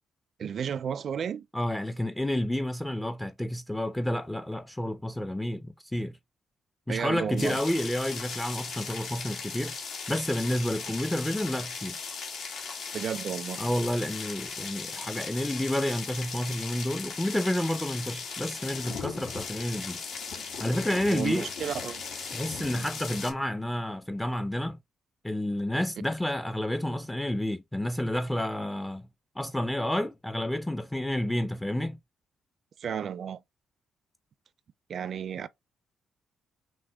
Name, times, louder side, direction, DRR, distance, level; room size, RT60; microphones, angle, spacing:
voice 1, 0.4-1.5 6.9-7.6 12.9-13.6 21.1-22.0 32.8-33.4 34.9-35.5, right 8 dB, 60° right, 0.4 m, -32 dB
voice 2, 1.5-6.2 6.9-9.8 10.1-12.0 13.6-20.0 20.6-21.5 22.3-24.8 25.2-29.1 29.4-32.0, left 1 dB, 10° left, 0.5 m, -30 dB
sound 1, 7.4-23.3, left 5 dB, 70° left, 1.4 m, -38 dB
6.1 x 2.1 x 3.3 m
supercardioid pair, 60°, 0 cm